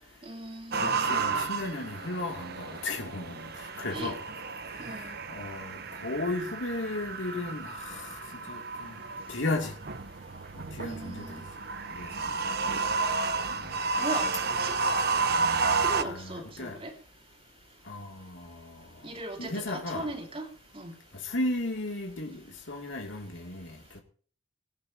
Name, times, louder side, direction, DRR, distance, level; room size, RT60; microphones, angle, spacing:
voice 1, 0.2-1.1 3.9-4.1 4.8-5.2 10.8-11.4 14.0-14.3 14.6-14.8 15.8-16.9 19.0-20.5 20.7-20.9, right 2 dB, 30° right, 3.5 m, -38 dB
sound 1, 0.7-16.0, right 4 dB, 55° right, 1.0 m, -32 dB
voice 2, 0.8-3.5 3.8-4.2 4.7-8.2 8.5-9.0 9.3-9.7 10.5-11.4 12.0-12.3 13.5-13.8 16.0-16.8 17.9-18.8 19.4-20.1 21.2-24.0, left 2 dB, 75° left, 2.7 m, -35 dB
18.5 x 18.0 x 2.9 m
head